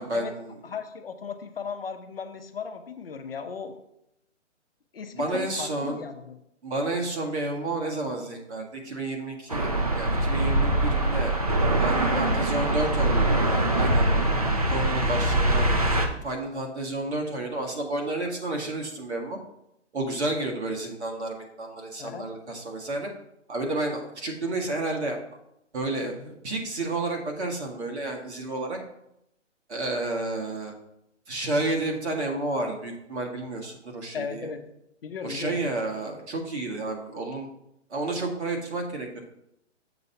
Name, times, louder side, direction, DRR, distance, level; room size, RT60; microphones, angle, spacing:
voice 1, 0.0-0.5 5.1-6.0 6.6-11.4 11.8-13.4 13.7-14.1 14.7-19.4 19.9-23.1 23.5-25.2 25.7-28.8 29.7-30.7 31.3-34.5 35.2-37.5 37.9-39.2, right 2 dB, 65° right, 1 dB, 1.8 m, -31 dB
voice 2, 0.6-3.8 4.9-6.3 12.1-12.6 14.3-14.6 22.0-22.3 34.1-34.6 35.0-35.6, left 6 dB, 50° left, 7 dB, 0.7 m, -36 dB
sound 1, 9.5-16.1, right 1 dB, 30° right, 0.5 m, -23 dB
6.8 x 4.0 x 5.6 m, 0.81 s
hypercardioid pair, 175°, 37 cm